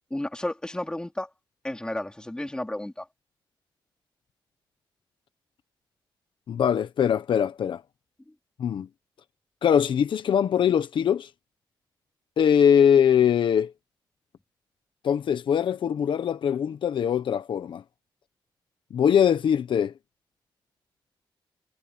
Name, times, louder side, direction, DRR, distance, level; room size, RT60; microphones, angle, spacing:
voice 1, 0.1-1.3 1.6-3.1, left 1 dB, 10° left, 3.8 m, -32 dB
voice 2, 6.5-7.8 8.6-8.9 9.6-11.3 12.4-13.7 15.0-17.8 18.9-19.9, left 8 dB, 75° left, 1.0 m, -22 dB
wide cardioid pair, 115°, 8 cm